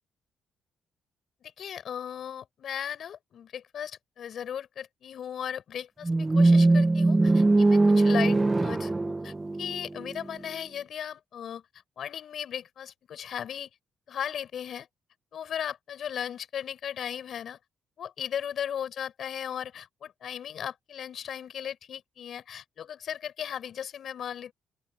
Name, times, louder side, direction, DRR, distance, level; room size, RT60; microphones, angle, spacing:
voice 1, 1.4-11.6 12.0-13.7 14.1-14.9 15.3-17.6 18.0-24.5, left 9 dB, 60° left, 7.4 m, -37 dB
sound 1, 6.0-10.2, right 2 dB, 20° right, 1.5 m, -21 dB
open air
cardioid pair, 90°, 0 cm